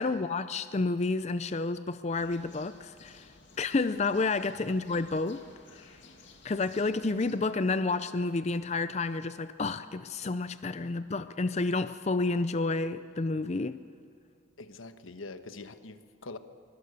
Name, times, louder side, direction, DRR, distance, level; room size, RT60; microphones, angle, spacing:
voice 1, 0.0-3.3 3.6-5.4 5.7-5.8 6.4-13.8, left 3 dB, 35° left, 12 dB, 0.4 m, -30 dB
sound 1, 2.1-7.4, left 3 dB, 65° left, 2.4 m, -56 dB
voice 2, 14.6-16.4, left 3 dB, 85° left, 10 dB, 1.2 m, -44 dB
24.0 x 22.0 x 6.7 m, 2.4 s
head